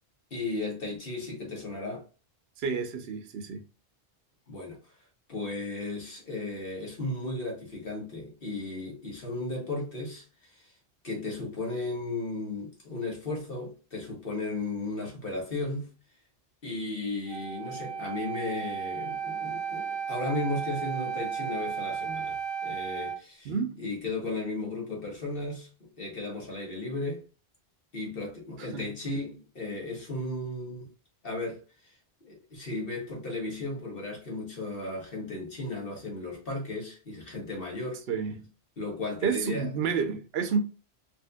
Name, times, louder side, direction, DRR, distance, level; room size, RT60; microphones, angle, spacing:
voice 1, 0.3-2.0 4.5-4.8 5.3-10.7 11.0-15.9 16.6-23.5 23.8-27.2 27.9-30.9 31.2-38.0 38.8-39.7, left 2 dB, 55° left, 1.6 m, -35 dB
voice 2, 2.6-3.6 23.5-23.8 28.7-28.9 38.1-38.5 39.2-40.6, right 5 dB, 65° right, 0.9 m, -30 dB
Wind instrument woodwind instrument, 17.3-23.2, right 7 dB, 35° right, 0.4 m, -34 dB
4.4 x 2.7 x 2.2 m
omnidirectional pair, 1.2 m